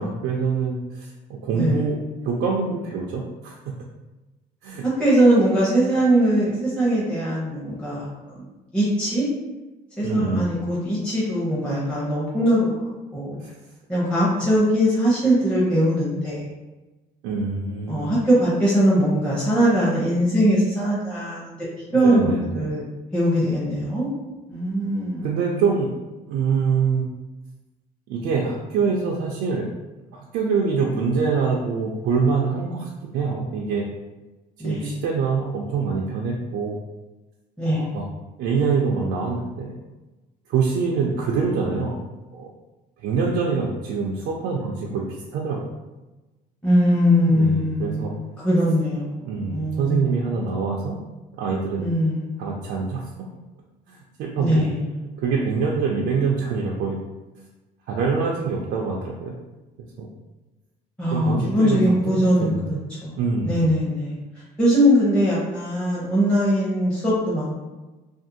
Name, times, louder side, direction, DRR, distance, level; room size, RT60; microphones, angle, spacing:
voice 1, 0.0-2.0 2.2-3.8 4.6-4.8 10.0-10.5 13.4-13.5 17.2-18.1 21.9-22.5 25.2-25.9 26.3-27.1 28.1-29.7 30.1-33.9 34.6-36.8 37.7-38.1 38.4-39.8 40.5-42.0 42.3-42.5 43.0-45.0 45.3-45.6 47.3-48.1 49.3-51.0 51.4-51.9 52.4-53.3 53.9-54.6 55.2-57.0 57.9-59.3 60.0-60.1 61.1-62.8 63.2-63.6, right 5 dB, 80° right, -2 dB, 0.4 m, -25 dB
voice 2, 1.5-1.9 4.8-8.4 8.7-9.3 10.0-12.7 13.1-13.4 13.9-16.4 17.9-21.6 21.9-22.8 23.1-24.1 24.5-25.4 34.6-34.9 37.6-37.9 46.6-50.2 51.8-52.3 54.4-54.8 61.0-63.1 63.4-64.2 64.6-67.5, equal, 5° left, -8 dB, 0.7 m, -21 dB
2.5 x 2.4 x 2.6 m, 1.1 s
cardioid pair, 110°, 17 cm